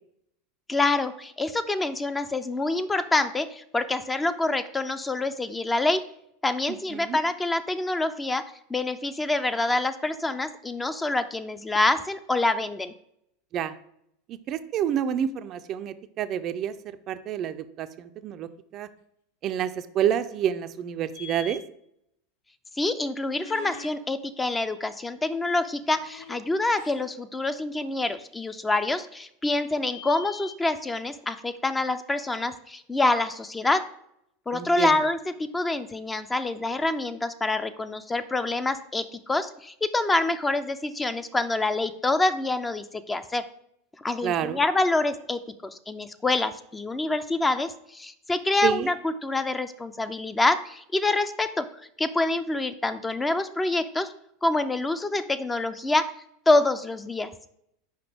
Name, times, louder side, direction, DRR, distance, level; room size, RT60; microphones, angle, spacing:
voice 1, 0.7-6.1 6.4-12.9 22.8-33.9 34.5-43.5 44.0-51.7 52.0-54.1 54.4-56.1 56.5-57.3, left 2 dB, 15° left, 12 dB, 0.4 m, -26 dB
voice 2, 14.5-16.7 17.1-18.5 18.7-18.9 19.4-21.6 34.5-34.9 44.2-44.6 48.6-48.9, right 9 dB, 45° right, 11 dB, 0.4 m, -28 dB
sound 1, 21.1-21.6 23.3-23.9 25.8-26.4 26.7-27.1 27.8-27.9 29.8-30.5, left 5 dB, 70° left, 0.8 m, -43 dB
5.8 x 5.1 x 3.4 m, 0.74 s
hypercardioid pair, 90°, 0 cm